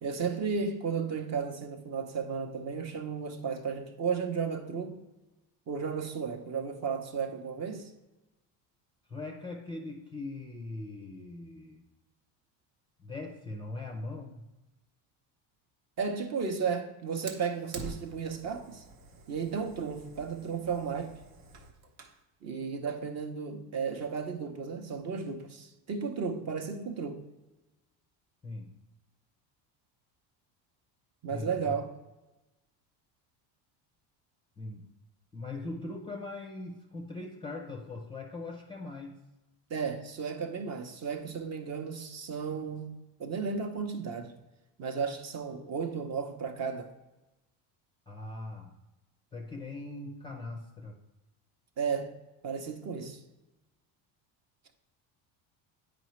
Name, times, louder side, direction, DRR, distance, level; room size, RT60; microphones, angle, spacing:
voice 1, 0.0-5.0 5.7-7.9 16.0-18.8 19.3-21.2 22.4-27.2 31.2-31.9 39.7-44.3 44.8-46.9 51.8-52.1 52.4-53.2, right 5 dB, 35° right, 0.7 m, -34 dB
voice 2, 9.1-11.9 13.0-14.4 28.4-28.8 31.3-31.8 34.6-34.9 35.3-39.2 48.1-48.8 49.3-51.0, left 2 dB, 10° left, 0.4 m, -40 dB
Fire, 17.3-22.2, right 3 dB, 70° right, 1.1 m, -47 dB
9.1 x 5.0 x 3.1 m
cardioid pair, 140°, 45 cm